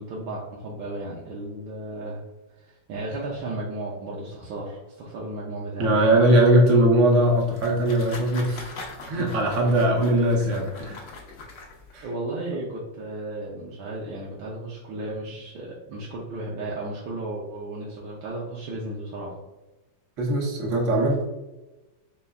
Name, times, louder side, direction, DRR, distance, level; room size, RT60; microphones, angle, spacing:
voice 1, 0.0-2.2 2.5-6.1 9.6-9.8 12.0-19.4, right 2 dB, 80° right, -4 dB, 1.5 m, -34 dB
voice 2, 5.8-8.7 9.1-11.0 11.9-12.0 20.2-21.2, right 1 dB, 50° right, 0 dB, 1.0 m, -20 dB
sound 1, 7.1-12.0, left 3 dB, 60° left, 0.8 m, -42 dB
5.4 x 3.3 x 2.3 m, 1.1 s
omnidirectional pair, 2.2 m